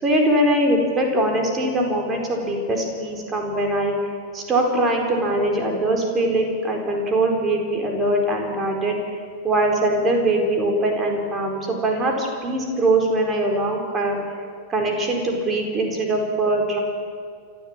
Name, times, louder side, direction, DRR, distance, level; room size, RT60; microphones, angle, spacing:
voice 1, 0.0-4.0 4.3-9.0 9.4-14.2 14.7-16.8, right 1 dB, 25° right, 2 dB, 4.5 m, -22 dB
29.0 x 13.0 x 7.5 m, 2.2 s
figure-of-eight pair, 90°, 0 cm